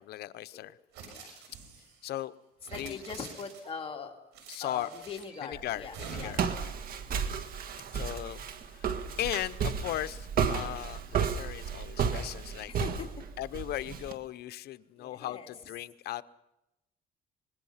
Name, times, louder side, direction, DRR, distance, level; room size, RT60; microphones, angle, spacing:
voice 1, 0.1-0.8 2.0-2.3 2.8-3.0 4.5-4.9 5.4-6.6 7.9-8.4 8.7-8.9 9.2-12.7 13.4-16.2, left 14 dB, 70° left, 13 dB, 0.8 m, -37 dB
sound 1, 0.9-2.0 2.6-3.8 4.3-5.4 5.9-6.6, right 5 dB, 85° right, 6.7 m, -46 dB
voice 2, 2.7-4.1 4.6-6.5 12.7-13.2 15.0-15.5, left 6 dB, 35° left, 2 dB, 2.6 m, -41 dB
Walk footsteps, 5.5-14.1, right 7 dB, 60° right, 1.9 m, -33 dB
25.5 x 21.0 x 5.8 m, 0.92 s
cardioid pair, 110°, 17 cm